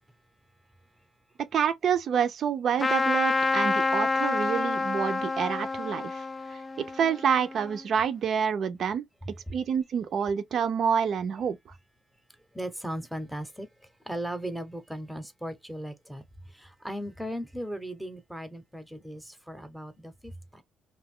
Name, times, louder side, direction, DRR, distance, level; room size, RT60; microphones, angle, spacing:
voice 1, 1.5-6.2 6.5-9.0 9.5-11.6, right 7 dB, 60° right, 0.5 m, -27 dB
Trumpet, 2.8-7.8, left 3 dB, 25° left, 0.3 m, -28 dB
voice 2, 12.5-13.7 14.0-16.2 16.5-20.6, right 1 dB, ahead, 0.8 m, -37 dB
2.6 x 2.3 x 3.5 m
cardioid pair, 90°, 0 cm